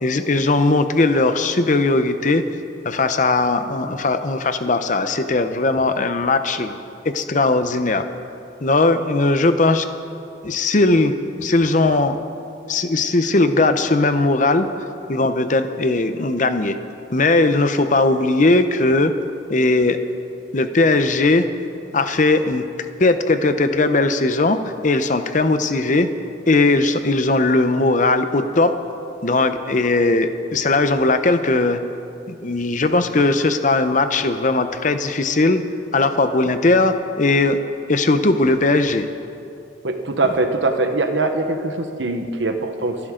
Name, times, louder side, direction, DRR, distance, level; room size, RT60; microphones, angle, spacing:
voice 1, 0.0-2.4 2.8-6.8 7.1-8.1 8.6-9.9 10.4-11.1 11.4-12.2 12.7-14.7 15.1-16.7 17.1-19.1 19.5-20.0 20.5-21.4 21.9-22.6 23.0-24.6 24.8-26.1 26.5-28.7 29.2-31.8 32.3-35.6 35.9-37.6 37.9-39.1, left 2 dB, 45° left, 9 dB, 0.8 m, -18 dB
voice 2, 39.8-43.0, right 2 dB, 90° right, 5 dB, 1.2 m, -22 dB
27.5 x 10.5 x 3.9 m, 2.7 s
head